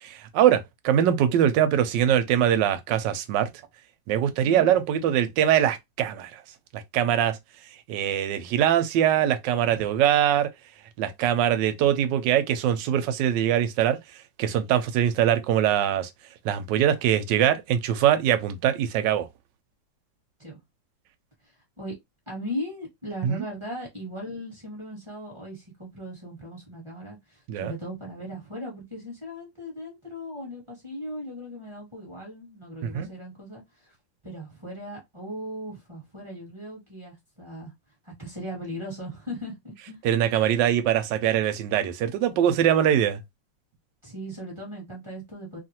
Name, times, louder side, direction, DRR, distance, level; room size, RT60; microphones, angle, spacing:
voice 1, 0.0-3.5 4.1-6.4 6.7-7.4 7.9-10.5 11.0-14.0 14.4-16.1 16.4-19.3 23.2-23.4 27.5-27.7 32.8-33.1 40.0-43.2, right 10 dB, 75° right, 1.2 m, -22 dB
voice 2, 22.3-33.9 34.2-37.7 38.0-40.0 44.0-45.6, equal, 20° right, 1.1 m, -38 dB
3.0 x 2.4 x 2.7 m
omnidirectional pair, 2.0 m